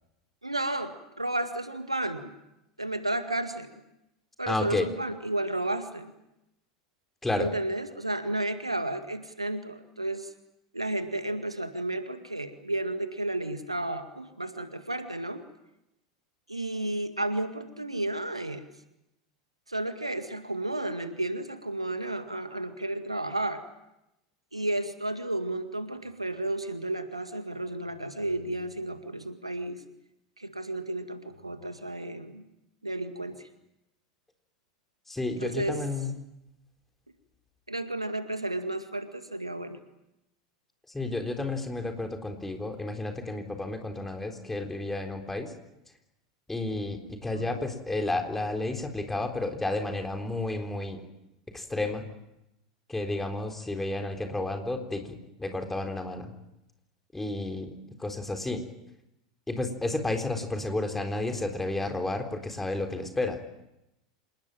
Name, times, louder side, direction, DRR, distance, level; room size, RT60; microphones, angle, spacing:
voice 1, 0.4-2.3 2.8-3.7 4.4-6.1 7.4-10.3 10.7-15.4 16.5-18.6 19.7-23.6 24.5-29.8 30.4-32.4 32.8-33.5 35.4-35.8 37.7-39.8 47.0-47.7, right 1 dB, 85° right, 9 dB, 2.0 m, -32 dB
voice 2, 4.5-4.8 7.2-7.5 35.1-36.1 40.9-45.5 46.5-51.0 51.5-52.0 52.9-56.3 57.1-57.7 58.0-58.6 59.5-63.4, left 2 dB, 10° left, 5 dB, 3.9 m, -31 dB
27.0 x 19.5 x 9.2 m, 0.89 s
figure-of-eight pair, 85°, 3 cm